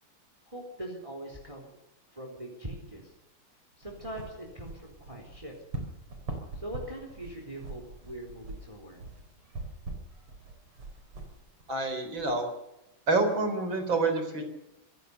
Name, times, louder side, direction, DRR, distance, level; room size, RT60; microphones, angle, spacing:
voice 1, 0.5-1.8 2.1-3.1 3.8-5.5 6.5-9.0, right 1 dB, 15° right, 1 dB, 3.8 m, -42 dB
sound 1, 3.8-12.3, right 2 dB, 80° right, 5.0 m, -43 dB
voice 2, 11.7-12.5 13.1-14.4, right 3 dB, 60° right, 6 dB, 4.7 m, -27 dB
26.0 x 16.0 x 6.8 m, 0.92 s
omnidirectional pair, 2.4 m